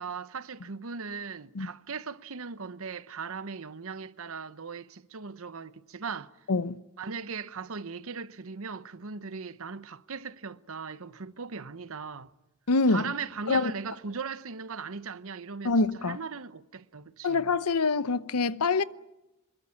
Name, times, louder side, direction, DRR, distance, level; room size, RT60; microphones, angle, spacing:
voice 1, 0.0-6.3 7.0-12.3 12.9-15.7 16.0-17.5, right 5 dB, 65° right, 0.9 m, -38 dB
voice 2, 6.5-6.8 12.7-13.1 13.5-13.7 15.6-16.2 17.2-18.8, left 3 dB, 85° left, 0.8 m, -25 dB
24.0 x 22.0 x 9.8 m
head